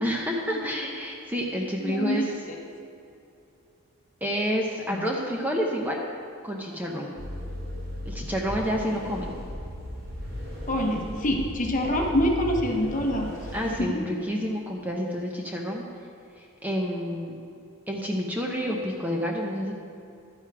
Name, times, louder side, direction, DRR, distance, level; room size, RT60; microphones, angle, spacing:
voice 1, 0.0-2.3 4.2-6.0 6.4-7.1 8.0-9.4 13.5-15.9 16.4-17.4 17.9-19.7, equal, 10° right, -1 dB, 0.8 m, -29 dB
voice 2, 1.8-2.6 4.9-5.1 10.7-13.3 13.8-14.0, left 1 dB, 35° left, 2 dB, 1.0 m, -26 dB
sound 1, 7.2-13.8, equal, 45° right, 1.9 m, -36 dB
12.0 x 9.7 x 3.5 m, 2.5 s
head